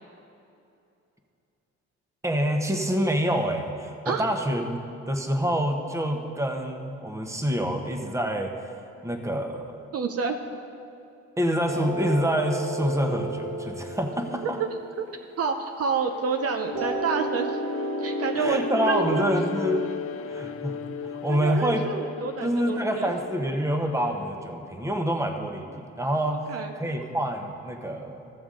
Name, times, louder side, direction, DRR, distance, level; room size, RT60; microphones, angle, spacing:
voice 1, 2.2-4.8 5.1-8.5 9.0-9.7 11.4-14.6 18.4-19.8 20.3-20.8 21.0-21.8 22.4-25.7 25.9-26.4 26.7-28.3, equal, 10° right, 4 dB, 1.0 m, -27 dB
voice 2, 9.9-10.6 14.6-14.7 15.4-17.6 18.0-19.2 21.3-23.1 26.2-26.8, right 5 dB, 50° right, 4 dB, 0.7 m, -29 dB
sound 1, 11.7-16.1 16.7-21.7, right 2 dB, 80° right, 1.5 m, -34 dB
Bowed string instrument, 16.0-24.4, left 7 dB, 45° left, 0.5 m, -35 dB
14.5 x 6.9 x 3.8 m, 2.7 s
cardioid pair, 90°, 30 cm